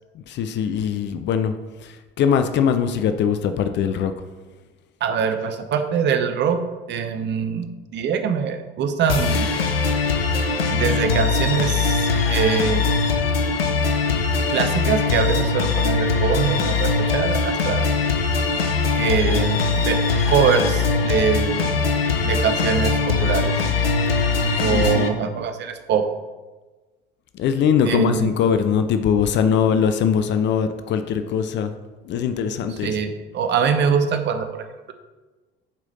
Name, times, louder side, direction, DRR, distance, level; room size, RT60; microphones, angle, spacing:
voice 1, 0.3-1.5 1.8-4.1 24.6-25.1 27.3-31.7 32.0-33.0, left 7 dB, 40° left, 9 dB, 0.5 m, -21 dB
voice 2, 5.0-6.6 6.9-9.5 10.7-12.8 14.5-17.9 19.0-19.6 19.8-20.0 20.3-21.8 22.2-23.7 24.6-26.0 27.8-28.3 32.7-34.9, right 6 dB, 40° right, 8 dB, 0.8 m, -23 dB
sound 1, 9.1-25.1, left 4 dB, 80° left, 0.7 m, -21 dB
7.4 x 5.0 x 4.0 m, 1.3 s
figure-of-eight pair, 60°, 29 cm